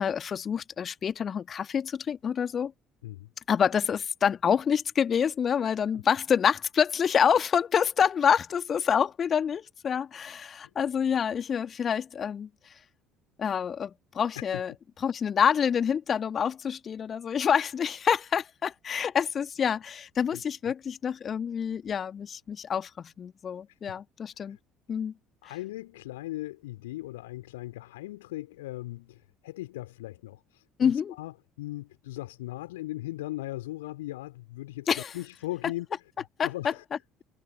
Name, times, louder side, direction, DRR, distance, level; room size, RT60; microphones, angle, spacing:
voice 1, 0.0-2.7 3.5-12.5 13.4-14.7 15.0-24.6 24.9-25.1 30.8-31.1 34.9-35.1 36.4-36.5, left 7 dB, 35° left, 2.0 m, -27 dB
voice 2, 5.6-6.0 14.5-14.6 20.3-20.7 23.9-24.0 24.5-24.6 25.4-35.9 36.2-36.8, left 17 dB, 70° left, 2.6 m, -39 dB
figure-of-eight pair, 55°, 0 cm